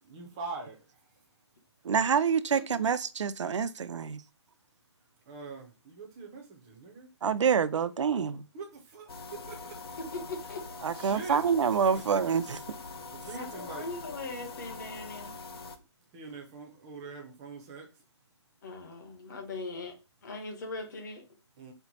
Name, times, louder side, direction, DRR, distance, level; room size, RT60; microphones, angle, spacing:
voice 1, 0.0-1.2 5.3-7.1 8.5-9.8 10.9-11.4 12.1-12.2 13.1-13.9 16.1-17.9 21.6-21.7, right 4 dB, 10° right, 0.5 m, -43 dB
voice 2, 1.8-4.2 7.2-8.4 10.8-12.4, right 6 dB, 80° right, 0.5 m, -27 dB
sound 1, 9.1-15.8, left 3 dB, 55° left, 0.6 m, -43 dB
voice 3, 10.1-10.6 13.3-15.4 18.6-19.9 20.2-21.2, left 3 dB, 40° left, 1.2 m, -40 dB
4.4 x 2.1 x 4.0 m
hypercardioid pair, 170°, 15 cm